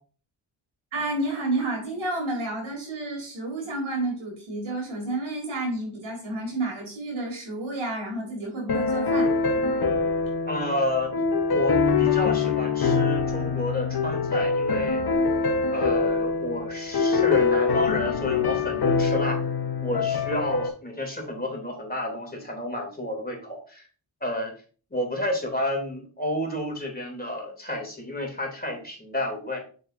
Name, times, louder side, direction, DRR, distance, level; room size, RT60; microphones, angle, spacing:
voice 1, 0.9-9.9, right 2 dB, 80° right, -1 dB, 3.8 m, -30 dB
sound 1, 8.7-20.7, left 4 dB, 55° left, 1.2 m, -24 dB
voice 2, 10.4-11.1 11.5-15.0 15.7-19.4 19.8-23.9 24.2-24.5 24.9-29.6, left 1 dB, 20° left, 1 dB, 2.9 m, -30 dB
6.9 x 6.5 x 2.6 m, 0.39 s
cardioid pair, 55°, 46 cm